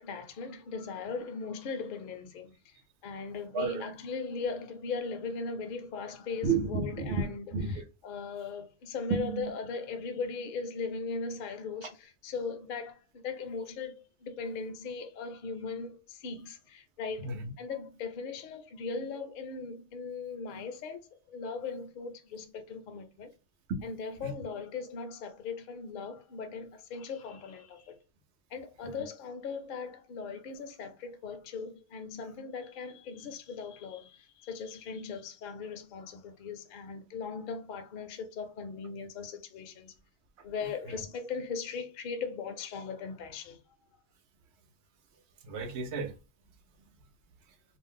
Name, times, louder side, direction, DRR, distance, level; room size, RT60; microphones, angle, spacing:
voice 1, 0.1-2.8 3.0-7.5 8.0-17.3 17.6-23.3 23.8-28.0 28.5-39.9 40.4-43.6, left 5 dB, 60° left, 0.6 m, -39 dB
voice 2, 3.5-3.8 6.4-7.2 7.5-7.8 9.1-9.5 11.8-11.9 17.2-17.5 23.9-24.3 28.8-28.9 40.9-41.0 45.4-46.1, right 4 dB, 75° right, 0.9 m, -32 dB
2.4 x 2.0 x 3.6 m
omnidirectional pair, 1.2 m